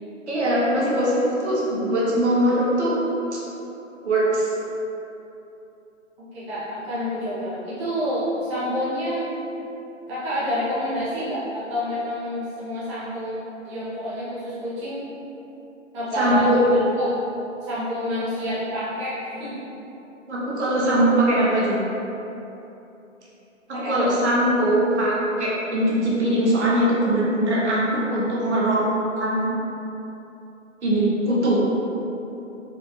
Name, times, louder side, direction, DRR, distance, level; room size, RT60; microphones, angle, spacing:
voice 1, 0.3-3.0 3.3-3.4 4.0-4.5 16.1-16.6 20.3-21.8 23.7-28.9 29.2-29.5 30.8-31.6, right 1 dB, 60° right, -6 dB, 1.2 m, -21 dB
voice 2, 6.3-9.2 10.1-15.1 15.9-17.1 17.6-19.6 23.7-24.1 31.3-31.4, equal, 25° right, -11 dB, 1.0 m, -28 dB
4.5 x 4.3 x 2.4 m, 3.0 s
figure-of-eight pair, 145°, 39 cm